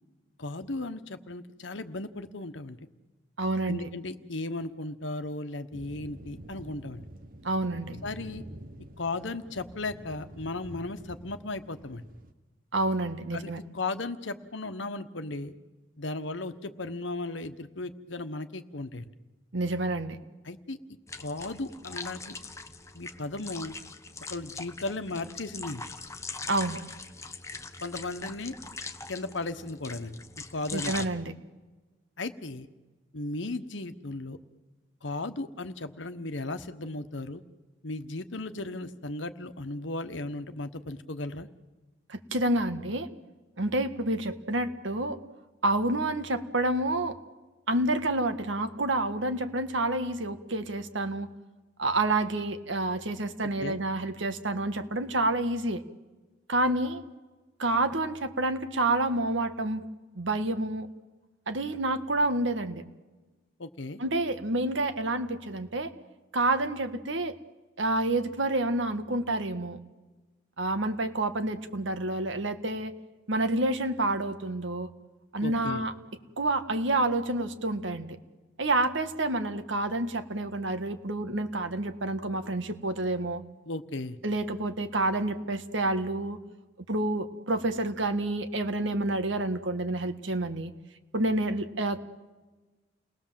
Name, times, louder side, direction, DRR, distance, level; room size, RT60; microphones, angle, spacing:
voice 1, 0.4-2.8 3.7-7.1 8.0-8.4 9.0-12.0 13.3-15.5 16.0-19.1 20.4-22.4 22.9-23.7 24.3-25.8 27.8-28.5 29.1-30.2 30.5-31.1 32.2-32.7 33.1-34.4 35.0-37.4 37.8-41.5 53.4-53.8 63.6-64.0 75.4-75.8 83.7-84.2, left 2 dB, 75° left, 10 dB, 1.2 m, -36 dB
voice 2, 3.4-3.9 7.4-8.0 12.7-13.6 19.5-20.2 26.5-26.8 30.7-31.3 42.1-43.1 43.6-45.2 45.6-47.2 47.7-51.3 51.8-55.8 56.5-57.0 57.6-59.8 60.1-60.9 61.5-62.8 64.0-65.9 66.3-67.4 67.8-69.8 70.6-72.9 73.3-74.9 75.3-75.9 76.4-78.1 78.6-83.4 84.2-86.4 86.9-90.7 91.1-92.0, right 2 dB, 80° right, 9 dB, 1.6 m, -28 dB
sound 1, 5.7-12.3, right 1 dB, 45° right, 1.4 m, -47 dB
sound 2, 21.1-31.1, left 4 dB, 15° left, 1.0 m, -42 dB
29.0 x 20.0 x 7.6 m, 1.2 s
head